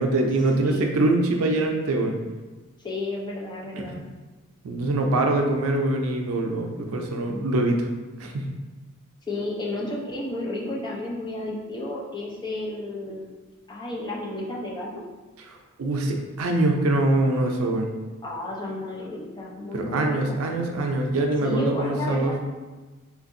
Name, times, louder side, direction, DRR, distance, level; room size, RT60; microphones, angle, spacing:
voice 1, 0.0-2.1 3.9-4.0 4.6-7.9 8.2-8.5 15.5-17.9 19.7-22.4, right 2 dB, 70° right, 3 dB, 0.4 m, -24 dB
voice 2, 0.6-1.0 2.8-4.0 9.3-13.3 13.7-15.0 18.2-20.4 21.4-22.5, left 1 dB, 20° left, -3 dB, 0.5 m, -32 dB
3.7 x 2.5 x 2.5 m, 1.2 s
head